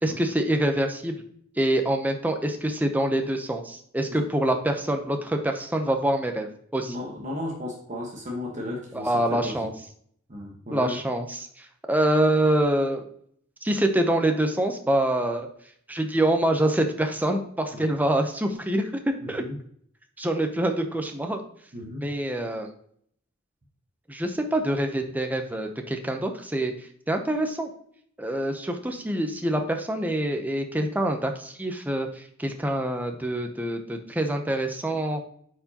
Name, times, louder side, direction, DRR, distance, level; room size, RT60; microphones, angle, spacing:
voice 1, 0.0-1.1 1.6-6.9 8.9-9.7 10.7-13.0 13.6-15.5 15.9-19.4 20.2-21.4 22.0-22.7 24.1-27.7 28.2-35.2, right 1 dB, 10° right, 4 dB, 0.6 m, -25 dB
voice 2, 6.8-9.1 9.4-9.7 10.3-11.0 17.7-17.9 19.2-19.6 21.7-22.0, left 1 dB, 35° right, -2 dB, 1.2 m, -35 dB
9.0 x 4.7 x 2.8 m, 0.64 s
head